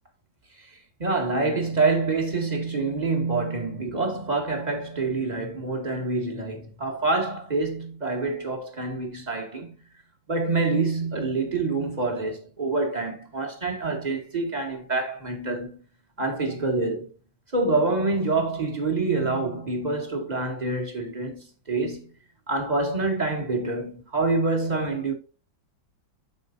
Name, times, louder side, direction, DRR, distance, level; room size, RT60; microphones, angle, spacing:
voice 1, 0.7-9.8 10.3-15.8 16.2-17.1 17.5-22.1 22.5-25.1, right 3 dB, 20° right, 2.2 m, -26 dB
13.5 x 5.7 x 2.6 m
omnidirectional pair, 2.0 m